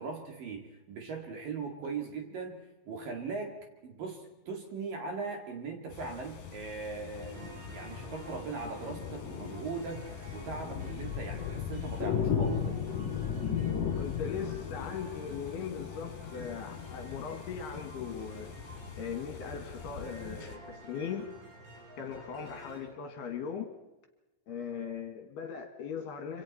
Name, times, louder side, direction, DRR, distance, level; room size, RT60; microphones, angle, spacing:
voice 1, 0.0-2.6 2.9-3.6 3.8-12.8, right 4 dB, 55° right, 3.3 m, -39 dB
sound 1, 5.9-20.6, left 7 dB, 50° left, 3.6 m, -37 dB
sound 2, 7.1-22.8, right 1 dB, 80° right, 9.3 m, -51 dB
voice 2, 14.0-18.5 19.0-21.2 22.0-23.7 24.5-26.4, left 7 dB, 65° left, 3.3 m, -39 dB
26.0 x 26.0 x 4.2 m
omnidirectional pair, 5.6 m